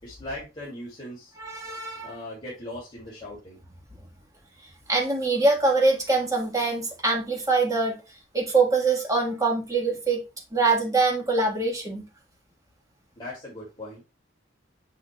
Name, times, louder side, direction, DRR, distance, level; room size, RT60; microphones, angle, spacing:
voice 1, 0.0-1.4 2.0-3.6 13.2-14.0, left 1 dB, 25° left, 2.5 m, -39 dB
voice 2, 1.4-2.1 4.9-8.0 8.3-10.2 10.5-12.1, right 3 dB, 15° right, 1.5 m, -24 dB
6.8 x 6.4 x 2.3 m
head